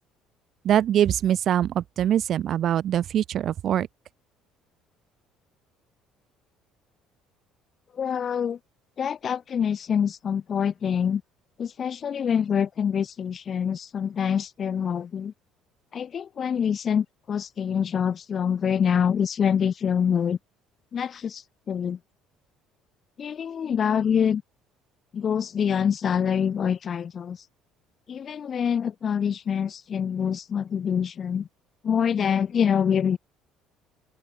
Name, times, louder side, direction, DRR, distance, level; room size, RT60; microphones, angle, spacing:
voice 1, 0.6-3.9, right 10 dB, 45° right, 1.0 m, -23 dB
voice 2, 7.9-8.6 9.0-11.2 11.6-15.3 15.9-20.4 20.9-22.0 23.2-24.4 25.1-27.4 28.1-31.5 31.8-33.2, left 7 dB, 35° left, 0.5 m, -25 dB
open air
cardioid pair, 140°, 0 cm